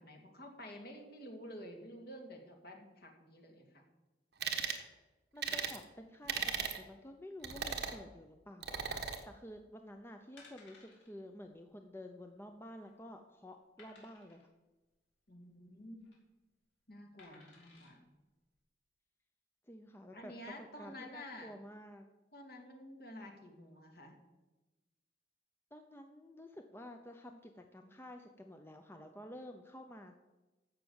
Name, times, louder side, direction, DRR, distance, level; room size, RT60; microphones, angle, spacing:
voice 1, 0.0-3.9 15.3-16.1 16.9-18.1 20.1-21.5 22.3-24.2, left 1 dB, 55° left, 2 dB, 2.4 m, -50 dB
sound 1, 4.4-4.8 5.4-5.8 6.3-6.8 7.4-8.0 8.6-9.2, right 6 dB, 60° right, 1.4 m, -37 dB
voice 2, 5.3-14.5 19.7-20.3 20.8-22.0 25.7-30.1, left 1 dB, 15° left, 5 dB, 0.7 m, -51 dB
sound 2, 10.4-11.1 11.4-11.6 11.9-12.0 12.5-13.0 13.8-14.5 15.8-16.2 17.2-17.9 18.5-18.6, left 3 dB, 75° left, 3.8 m, -61 dB
15.0 x 6.0 x 7.1 m, 1.1 s
head